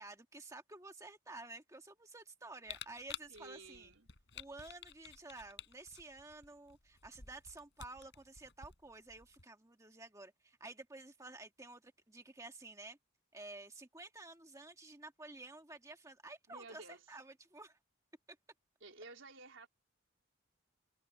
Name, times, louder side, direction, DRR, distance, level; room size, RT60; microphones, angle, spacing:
voice 1, 0.0-3.9 4.3-13.0 13.3-17.8, right 2 dB, 15° right, 1.6 m, -52 dB
Camera, 2.6-9.4, left 9 dB, 65° left, 4.5 m, -52 dB
voice 2, 3.3-4.1 16.5-17.0 18.8-19.7, right 2 dB, 75° right, 3.8 m, -53 dB
head